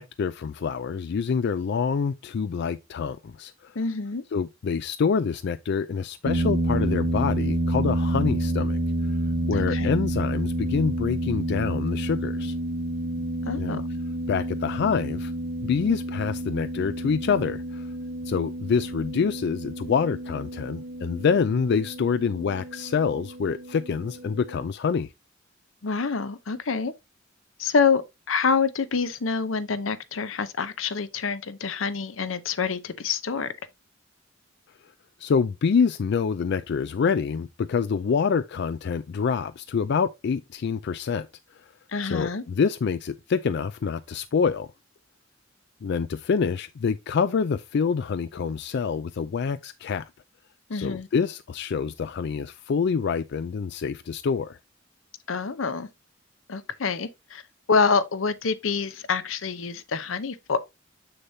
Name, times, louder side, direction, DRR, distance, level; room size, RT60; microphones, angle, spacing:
voice 1, 0.0-3.7 4.3-8.8 9.5-12.5 13.6-13.8 14.3-15.3 15.6-17.9 18.3-25.1 35.2-41.3 42.0-44.7 45.8-50.1 50.7-54.6, left 6 dB, 60° left, 0.4 m, -26 dB
voice 2, 3.8-4.2 9.5-9.9 13.4-13.8 25.8-26.9 27.6-28.0 28.3-33.5 41.9-42.4 50.7-51.1 55.3-55.9 56.5-57.4 57.7-60.6, left 5 dB, 85° left, 0.7 m, -26 dB
sound 1, 6.2-24.7, right 1 dB, 50° right, 2.0 m, -29 dB
7.1 x 6.7 x 2.7 m
head